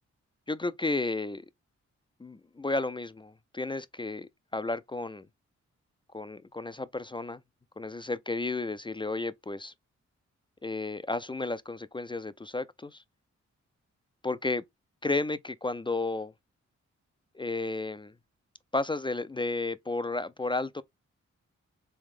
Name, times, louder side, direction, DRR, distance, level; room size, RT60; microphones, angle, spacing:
voice 1, 0.5-1.5 2.2-5.3 6.1-7.4 7.8-9.7 10.6-13.0 14.2-14.6 15.0-16.3 17.3-18.1 18.7-20.8, left 2 dB, 15° left, 0.3 m, -32 dB
3.5 x 3.3 x 3.5 m
cardioid pair, 60°, 29 cm